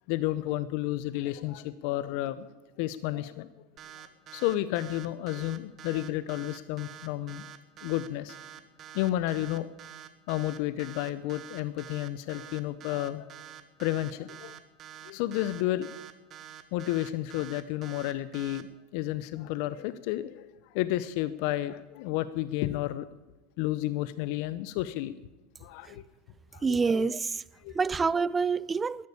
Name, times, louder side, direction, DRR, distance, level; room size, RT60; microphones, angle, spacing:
voice 1, 0.1-2.5 2.8-3.5 4.3-7.5 7.8-8.4 8.9-9.7 10.3-13.3 13.8-14.6 15.0-15.9 16.7-18.7 18.9-23.1 23.6-25.1 25.6-26.0 26.5-27.0 27.6-27.8, left 15 dB, 65° left, 0.6 m, -31 dB
sound 1, 3.8-18.6, right 10 dB, 45° right, 1.5 m, -47 dB
voice 2, 26.6-27.4 27.7-29.1, right 5 dB, 20° right, 0.5 m, -27 dB
13.0 x 11.0 x 8.5 m
hypercardioid pair, 90°, 0 cm